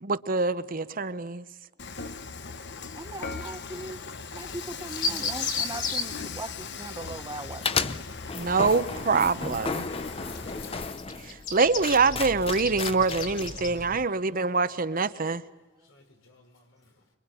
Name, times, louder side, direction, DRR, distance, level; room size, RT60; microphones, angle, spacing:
voice 1, 0.0-1.4 5.1-5.2 8.3-9.9 11.3-15.4, right 4 dB, 45° right, 0.9 m, -25 dB
Dishes pots and pans / Frying (food), 1.8-11.0, left 5 dB, 60° left, 1.3 m, -39 dB
voice 2, 3.0-4.0 4.3-7.9, right 2 dB, 20° right, 0.9 m, -39 dB
sound 1, 4.9-6.0 10.3-10.7 10.9-13.7, left 4 dB, 45° left, 3.7 m, -32 dB
sound 2, 7.6-14.1, left 4 dB, 30° left, 0.8 m, -34 dB
voice 3, 12.9-14.8 15.8-17.1, left 1 dB, 85° left, 4.8 m, -56 dB
26.0 x 23.5 x 9.1 m
head